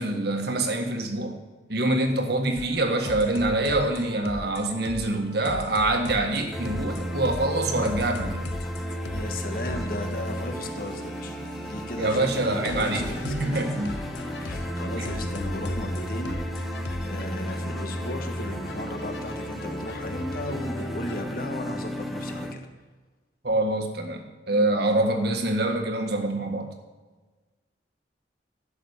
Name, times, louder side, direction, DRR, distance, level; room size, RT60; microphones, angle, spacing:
voice 1, 0.0-1.4 1.7-8.5 12.0-13.9 15.0-15.1 23.4-24.2 24.5-26.7, right 2 dB, 60° right, 4 dB, 1.6 m, -25 dB
sound 1, 2.6-21.2, left 2 dB, 75° left, 0.7 m, -39 dB
sound 2, 6.5-22.5, equal, ahead, 0.7 m, -33 dB
voice 2, 9.1-13.8 14.4-16.7 17.0-22.6, left 1 dB, 50° left, 5 dB, 1.5 m, -36 dB
12.0 x 6.5 x 8.3 m, 1.3 s
head